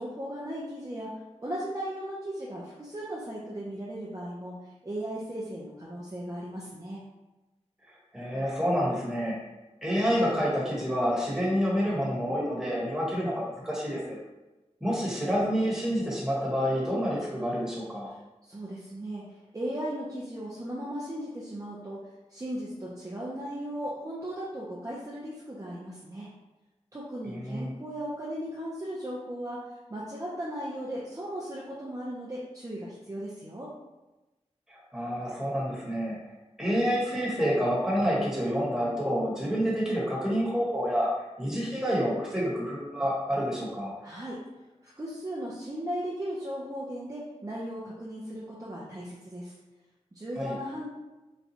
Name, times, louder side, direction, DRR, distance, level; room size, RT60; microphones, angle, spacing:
voice 1, 0.0-7.0 18.1-19.2 19.5-22.0 22.3-26.3 26.9-33.7 44.0-44.4 44.8-49.5 50.1-50.9, equal, 30° right, -6 dB, 0.5 m, -37 dB
voice 2, 8.1-9.4 9.8-14.2 14.8-18.1 27.3-27.7 34.7-36.2 36.6-41.1 41.4-43.9 50.4-50.6, equal, 5° right, -6 dB, 1.2 m, -28 dB
4.0 x 2.2 x 2.8 m, 1.1 s
wide cardioid pair, 70°, 12 cm